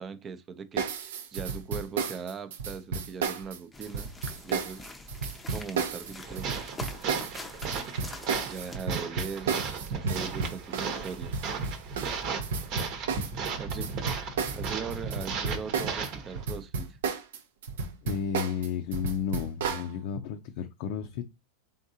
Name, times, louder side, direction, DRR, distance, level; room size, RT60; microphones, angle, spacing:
voice 1, 0.0-5.1 5.5-6.7 8.4-11.4 13.6-13.9 14.5-17.0, right 5 dB, 25° right, 0.5 m, -40 dB
sound 1, 0.8-16.1 16.4-19.9, right 5 dB, 80° right, 0.6 m, -33 dB
sound 2, 3.7-8.8, left 3 dB, 10° left, 0.6 m, -45 dB
sound 3, 6.2-16.4, right 5 dB, 50° right, 1.0 m, -35 dB
voice 2, 18.0-21.4, left 7 dB, 60° left, 0.5 m, -33 dB
3.7 x 3.6 x 2.7 m
supercardioid pair, 125°, 0 cm